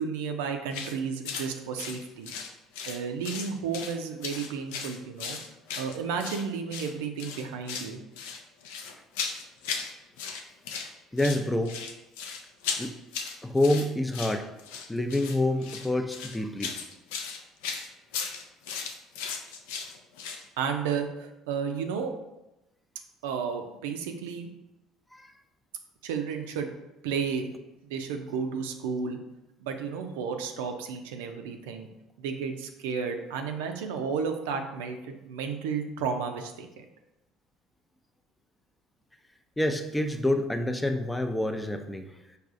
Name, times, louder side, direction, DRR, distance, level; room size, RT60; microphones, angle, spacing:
voice 1, 0.0-2.3 2.9-5.4 5.8-8.0 20.6-22.1 23.2-24.5 26.0-26.7 27.0-27.5 27.8-29.2 29.6-31.9 32.2-36.9, right 6 dB, 85° right, 5 dB, 0.4 m, -32 dB
sound 1, 0.7-0.9 1.2-1.5 1.8-3.0 3.2-3.9 4.2-6.4 6.7-6.9 7.2-7.9 8.2-9.9 10.2-10.9 11.2-20.4, left 6 dB, 85° left, 0.4 m, -36 dB
voice 2, 11.1-11.8 12.8-12.9 13.4-14.5 14.9-16.7 25.1-25.3 39.6-42.1, left 1 dB, 10° left, 6 dB, 0.4 m, -27 dB
4.7 x 2.3 x 2.5 m, 0.94 s
supercardioid pair, 75°, 0 cm